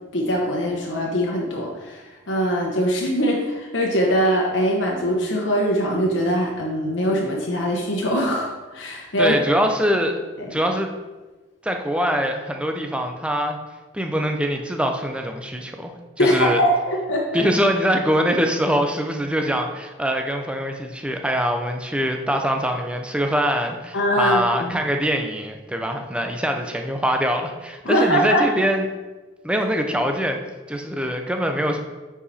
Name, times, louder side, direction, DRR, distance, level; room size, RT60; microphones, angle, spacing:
voice 1, 0.1-9.4 10.4-10.5 16.2-17.4 23.9-24.8 27.8-28.4, equal, 80° left, -2 dB, 1.1 m, -22 dB
voice 2, 9.2-10.2 10.5-10.9 11.6-13.6 13.9-15.9 16.2-16.6 17.3-28.8 29.4-30.4 30.7-31.8, equal, 5° right, 4 dB, 0.6 m, -23 dB
8.4 x 4.9 x 4.2 m, 1.2 s
head